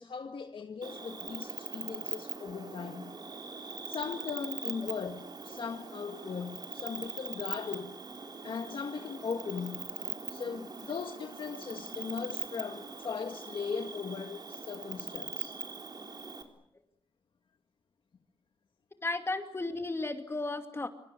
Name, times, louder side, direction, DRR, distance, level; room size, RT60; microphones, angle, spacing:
voice 1, 0.0-3.2 3.9-8.0 8.4-9.9 10.3-15.6, left 5 dB, 65° left, 1.8 m, -38 dB
Cricket, 0.8-16.4, right 4 dB, 50° right, 4.1 m, -42 dB
voice 2, 19.0-20.9, left 2 dB, 25° left, 2.5 m, -34 dB
26.5 x 25.5 x 8.3 m
wide cardioid pair, 130°, 9 cm